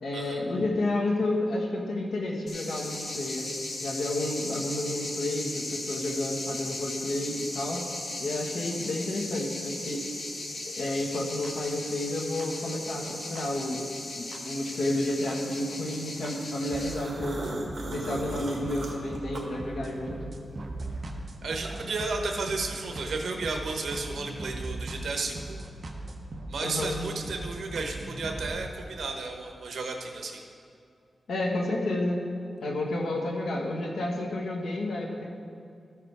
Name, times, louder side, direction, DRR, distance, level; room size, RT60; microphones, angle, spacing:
voice 1, 0.0-3.5 3.8-7.8 8.2-10.0 10.8-13.8 14.1-17.5 17.9-20.3 26.6-27.0 31.3-32.2 32.6-35.3, left 1 dB, 90° left, 0 dB, 1.3 m, -31 dB
sound 1, 2.5-16.9, left 2 dB, 50° left, 1.2 m, -37 dB
sound 2, 11.4-11.5 12.4-12.5 13.4-13.5 14.3-14.4 15.3-15.4 16.2-16.3 16.7-28.5, right 2 dB, 40° right, 0.8 m, -39 dB
sound 3, 16.6-20.2 20.5-22.0, right 1 dB, 60° right, 1.4 m, -39 dB
voice 2, 21.4-25.6 26.5-30.4, right 3 dB, 80° right, 3 dB, 1.0 m, -33 dB
13.5 x 4.9 x 4.7 m, 2.5 s
wide cardioid pair, 135°, 0 cm